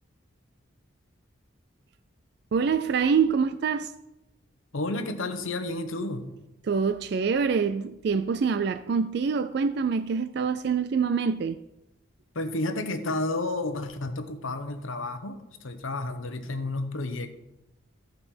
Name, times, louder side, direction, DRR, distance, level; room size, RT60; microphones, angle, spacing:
voice 1, 2.5-3.9 6.7-11.6, right 5 dB, 55° right, 0.3 m, -25 dB
voice 2, 4.7-6.3 12.3-17.3, left 2 dB, 85° left, 1.0 m, -31 dB
14.5 x 5.3 x 4.4 m
head